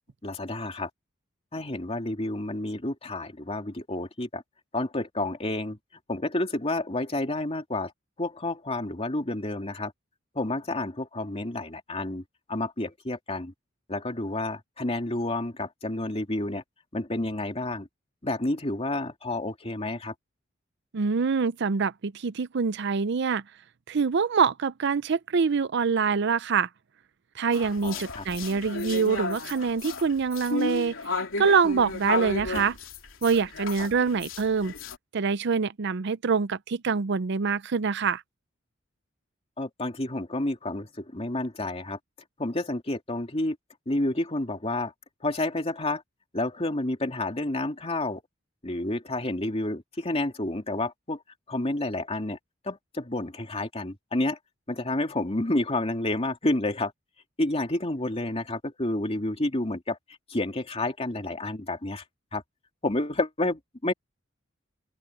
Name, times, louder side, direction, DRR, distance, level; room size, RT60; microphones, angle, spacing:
voice 1, 0.2-0.9 1.5-4.4 4.7-5.8 6.1-7.9 8.2-9.9 10.3-13.5 13.9-16.6 16.9-17.9 18.2-20.1 27.8-28.2 33.8-33.9 39.6-42.0 42.4-43.6 43.9-44.9 45.2-46.0 46.3-48.2 48.6-51.2 51.5-52.4 52.6-54.4 54.7-56.9 57.4-60.0 60.3-62.0 62.3-62.4 62.8-63.9, left 2 dB, 30° left, 2.7 m, -30 dB
voice 2, 20.9-23.4 23.9-26.7 27.4-30.9 31.4-32.8 33.2-34.7 35.1-38.2, right 5 dB, 60° right, 0.5 m, -25 dB
sound 1, 27.5-35.0, left 3 dB, 90° left, 3.1 m, -33 dB
open air
head